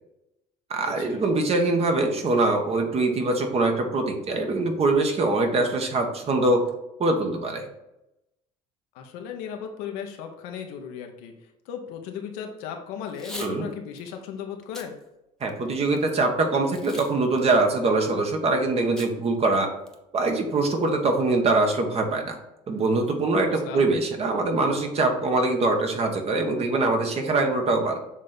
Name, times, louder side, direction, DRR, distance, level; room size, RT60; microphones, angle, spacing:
voice 1, 0.7-6.7 7.0-7.7 13.4-13.7 15.4-19.7 20.1-22.4 22.7-28.0, right 2 dB, 40° right, 3 dB, 1.4 m, -23 dB
voice 2, 8.9-11.3 11.6-15.0 23.5-23.9, left 8 dB, 80° left, 4 dB, 1.0 m, -36 dB
Packing tape duct tape / Tearing, 13.1-13.5 14.0-14.1 14.6-14.9 15.4-16.0 16.7-17.1 17.4-17.5 19.0-19.1 19.5-19.6 19.9-20.2, left 1 dB, 5° left, 1.0 m, -40 dB
7.2 x 3.3 x 4.0 m, 0.90 s
supercardioid pair, 85°, 16 cm